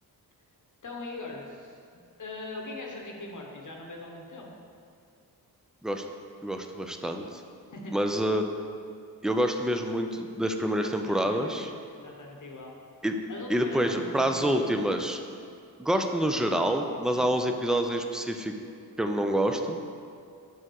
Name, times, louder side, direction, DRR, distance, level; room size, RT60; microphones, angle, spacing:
voice 1, 0.8-1.8 2.2-4.5 7.7-8.0 11.1-12.7 13.3-14.8 17.1-17.3, left 2 dB, 55° left, 0 dB, 0.9 m, -41 dB
voice 2, 6.4-7.4 7.9-8.5 9.2-11.7 13.0-13.2 13.5-15.2 15.8-18.5 19.0-19.8, right 1 dB, ahead, 5 dB, 0.3 m, -27 dB
6.8 x 3.6 x 6.2 m, 2.3 s
wide cardioid pair, 130°, 38 cm